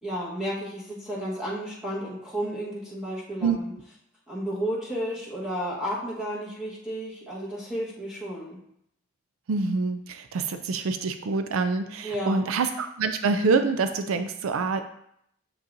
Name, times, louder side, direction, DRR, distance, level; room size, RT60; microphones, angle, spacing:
voice 1, 0.0-3.7 4.3-8.6 12.0-12.5, equal, 5° right, -8 dB, 1.3 m, -32 dB
voice 2, 9.5-14.8, right 4 dB, 85° right, 8 dB, 0.4 m, -26 dB
7.1 x 5.3 x 2.6 m, 0.73 s
head